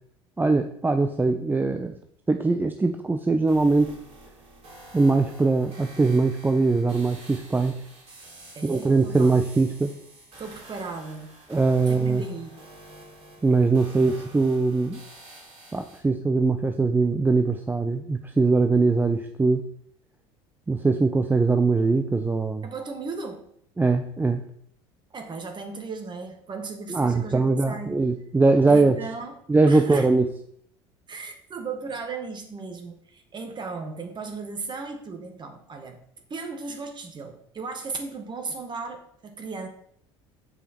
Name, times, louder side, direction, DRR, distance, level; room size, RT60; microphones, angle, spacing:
voice 1, 0.4-2.0 2.3-3.9 4.9-7.8 8.6-9.9 11.5-12.2 13.4-15.0 15.7-19.6 20.7-22.6 23.8-24.4 26.9-29.0 29.5-30.3, right 3 dB, 15° right, 7 dB, 0.6 m, -21 dB
sound 1, 3.5-16.0, right 2 dB, 50° right, 3.3 m, -48 dB
voice 2, 8.5-9.3 10.4-11.3 11.9-12.6 22.6-23.4 25.1-28.0 28.7-29.4 29.7-30.1 31.1-36.0 36.3-39.7, right 4 dB, 30° right, 5 dB, 1.6 m, -36 dB
7.3 x 4.9 x 4.3 m, 0.66 s
hypercardioid pair, 70°, 14 cm